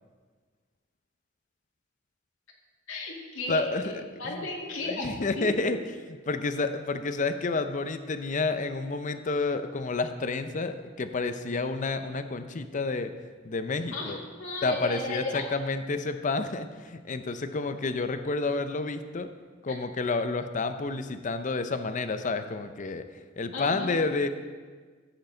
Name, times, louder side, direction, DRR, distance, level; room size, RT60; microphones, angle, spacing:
voice 1, 2.9-3.9 4.2-5.1 5.4-5.5 13.9-15.5 16.4-16.5 23.5-24.0, left 3 dB, 70° left, -2 dB, 2.1 m, -34 dB
voice 2, 3.5-3.8 4.2-4.5 4.8-5.8 6.3-13.1 13.4-14.2 14.6-19.3 19.6-23.0 23.4-24.3, left 3 dB, 40° left, 9 dB, 0.6 m, -30 dB
14.5 x 7.9 x 3.9 m, 1.5 s
head